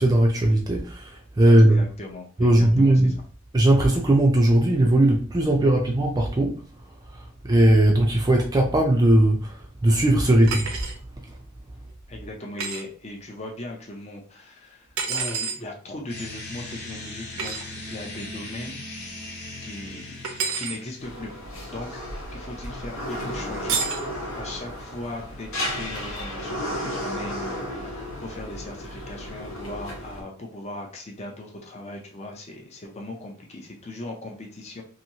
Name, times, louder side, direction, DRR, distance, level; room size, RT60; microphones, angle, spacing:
voice 1, 0.0-1.8 2.4-3.1 3.5-6.6 7.4-9.5 9.8-10.7, right 1 dB, 20° right, 0.4 m, -18 dB
voice 2, 1.4-3.1 12.1-18.8 19.6-20.2 20.5-21.3 21.7-22.0 22.3-23.8 24.3-34.8, left 1 dB, 30° left, 0.6 m, -38 dB
sound 1, 10.5-11.0 12.6-12.8 15.0-15.6 17.4-17.6 20.2-20.8 23.7-24.1, right 5 dB, 85° right, 0.6 m, -28 dB
Electric Ambience, 16.1-21.2, left 2 dB, 55° left, 1.0 m, -38 dB
sound 2, 21.0-30.2, left 1 dB, 75° left, 1.0 m, -33 dB
2.9 x 2.7 x 2.8 m
head